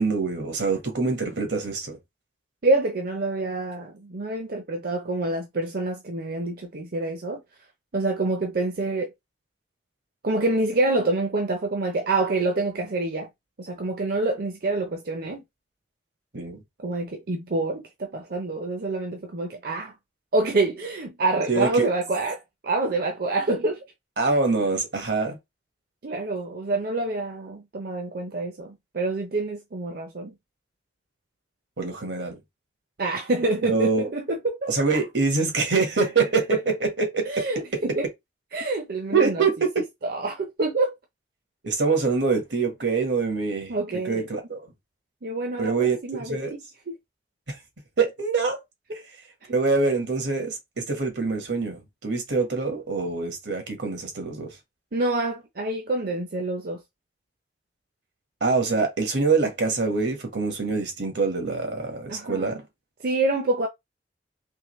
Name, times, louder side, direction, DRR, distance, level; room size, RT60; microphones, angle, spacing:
voice 1, 0.0-2.0 16.3-16.6 21.5-21.9 24.2-25.4 31.8-32.4 33.6-34.1 34.7-37.4 39.1-39.8 41.6-43.7 44.0-44.6 45.6-46.0 46.3-46.5 47.5-47.6 48.0-48.6 49.5-54.5 58.4-62.6, right 4 dB, 80° right, 1.4 m, -25 dB
voice 2, 2.6-7.4 7.9-9.1 10.2-13.3 13.6-15.4 16.8-19.9 20.3-23.8 26.0-30.3 33.0-35.0 37.2-38.1 38.5-39.4 40.0-40.9 43.7-44.3 45.2-46.6 46.9-47.0 48.9-49.0 49.4-49.5 54.9-56.8 62.1-62.6 63.0-63.7, right 2 dB, 60° right, 0.7 m, -27 dB
3.6 x 3.0 x 3.1 m
head